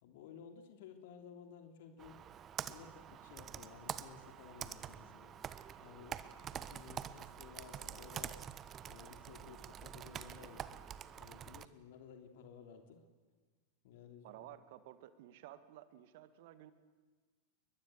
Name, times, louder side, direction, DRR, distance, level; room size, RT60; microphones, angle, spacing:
voice 1, 0.0-2.2 2.6-5.3 5.8-8.4 8.8-13.0 13.8-14.5, left 7 dB, 50° left, 5 dB, 3.4 m, -55 dB
Computer keyboard, 2.0-11.7, right 9 dB, 25° right, 1.2 m, -47 dB
voice 2, 14.2-16.7, right 13 dB, 50° right, 12 dB, 1.9 m, -54 dB
29.5 x 23.0 x 8.2 m, 1.4 s
figure-of-eight pair, 90°, 0 cm